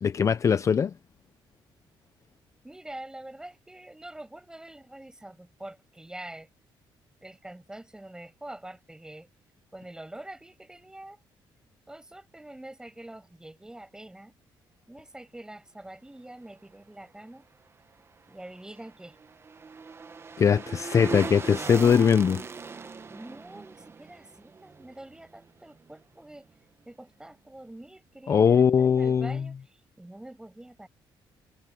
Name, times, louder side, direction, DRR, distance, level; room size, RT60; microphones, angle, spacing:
voice 1, 0.0-0.9 20.4-22.4 28.3-29.4, left 7 dB, 35° left, 0.5 m, -21 dB
voice 2, 2.6-6.5 7.2-9.3 9.7-11.2 11.9-14.3 14.9-17.4 18.3-19.2 23.1-26.5 26.9-30.9, right 1 dB, 10° right, 6.5 m, -45 dB
sound 1, 18.3-25.5 25.8-25.9, right 5 dB, 30° right, 1.1 m, -39 dB
cardioid pair, 130°, 9 cm